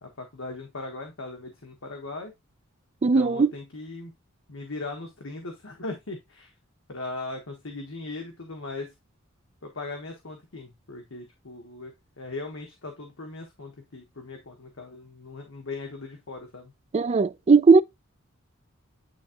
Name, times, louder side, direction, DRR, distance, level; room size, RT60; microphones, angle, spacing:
voice 1, 0.0-2.3 3.1-4.1 4.5-6.5 6.9-8.9 9.6-11.9 12.2-16.7, left 3 dB, 75° left, 1.3 m, -39 dB
voice 2, 3.0-3.5 16.9-17.8, right 4 dB, 30° right, 0.4 m, -18 dB
9.5 x 3.6 x 2.9 m
head